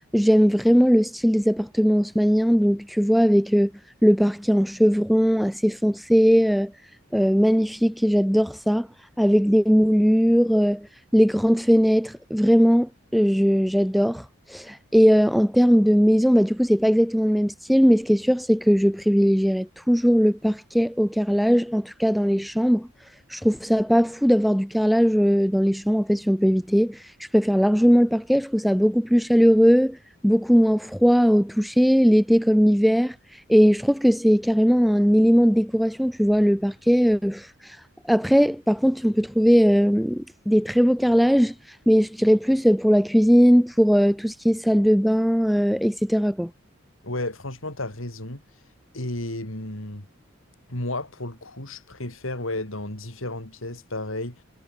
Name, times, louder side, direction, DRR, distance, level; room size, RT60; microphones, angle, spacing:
voice 1, 0.1-3.7 4.0-6.7 7.1-8.9 9.2-10.9 11.1-22.9 23.3-30.0 30.2-33.2 33.5-37.8 38.1-41.5 41.9-46.5, equal, ahead, 0.4 m, -19 dB
voice 2, 47.0-48.4 48.9-50.1 50.7-54.4, left 1 dB, 80° left, 5.3 m, -32 dB
head